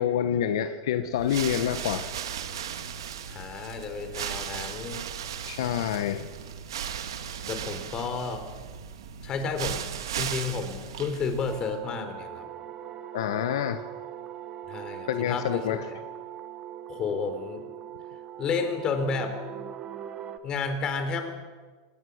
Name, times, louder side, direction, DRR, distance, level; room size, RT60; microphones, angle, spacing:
voice 1, 0.0-2.1 5.5-6.3 13.1-13.8 15.1-15.8, left 10 dB, 75° left, 9 dB, 1.3 m, -27 dB
sound 1, 1.1-11.8, right 8 dB, 90° right, 2.0 m, -36 dB
voice 2, 3.3-5.1 7.5-8.4 9.2-9.9 10.2-12.5 14.7-16.0 16.9-17.7 18.4-19.4 20.4-21.3, left 5 dB, 35° left, 7 dB, 4.1 m, -31 dB
sound 2, 11.5-20.4, right 10 dB, 35° right, 1.8 m, -41 dB
26.0 x 19.0 x 6.5 m, 1.4 s
supercardioid pair, 125°, 2 cm